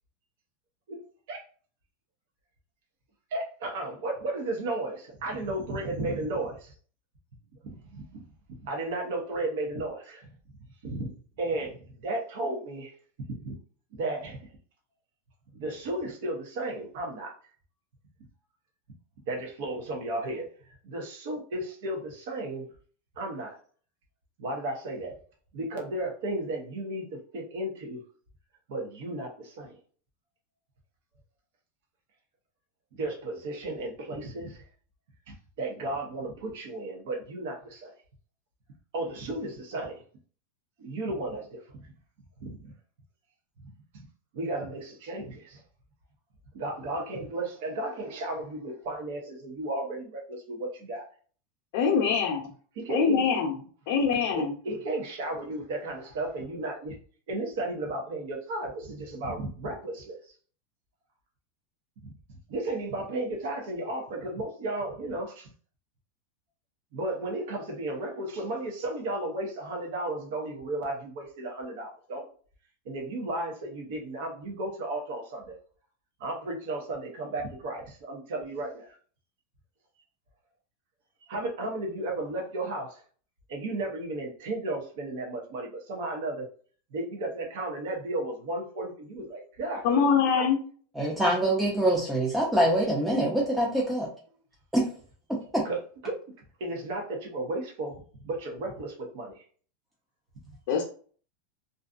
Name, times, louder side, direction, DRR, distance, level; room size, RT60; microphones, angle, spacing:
voice 1, 3.3-6.7 7.6-8.2 8.6-10.3 10.8-11.1 11.4-12.9 13.4-13.6 13.9-14.5 15.5-17.3 19.3-20.4 20.8-22.6 23.2-23.6 24.4-25.2 25.5-28.0 28.7-29.8 32.9-34.6 35.3-37.9 38.9-40.0 40.8-41.8 42.4-42.7 44.3-45.6 46.5-51.1 52.8-53.4 54.0-54.1 54.3-57.0 57.3-60.3 62.0-62.1 62.5-65.5 66.9-72.2 72.8-75.5 76.2-79.0 81.3-83.0 83.5-86.4 86.9-90.5 95.6-95.8 96.0-96.1 96.6-99.4 100.4-100.5, right 2 dB, 65° right, 0.8 m, -34 dB
voice 2, 51.7-52.4 52.9-53.5 53.9-54.5 89.8-90.6 100.7-100.9, left 6 dB, 60° left, 0.6 m, -24 dB
voice 3, 91.0-94.1 94.7-94.8 95.5-95.6, right 1 dB, 5° right, 0.6 m, -24 dB
2.6 x 2.3 x 2.4 m
supercardioid pair, 140°, 0 cm